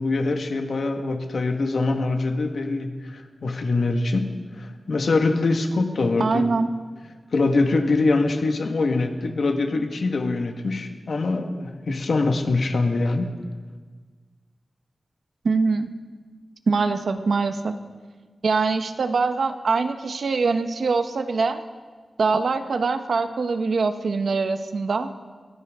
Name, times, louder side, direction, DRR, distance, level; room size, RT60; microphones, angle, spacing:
voice 1, 0.0-6.5 7.3-13.3, left 3 dB, 75° left, 4 dB, 1.6 m, -23 dB
voice 2, 6.2-6.7 15.4-15.9 16.7-17.8 18.4-21.6 22.2-25.1, right 4 dB, 75° right, 8 dB, 1.0 m, -23 dB
23.0 x 16.5 x 3.7 m, 1.5 s
wide cardioid pair, 115°, 0 cm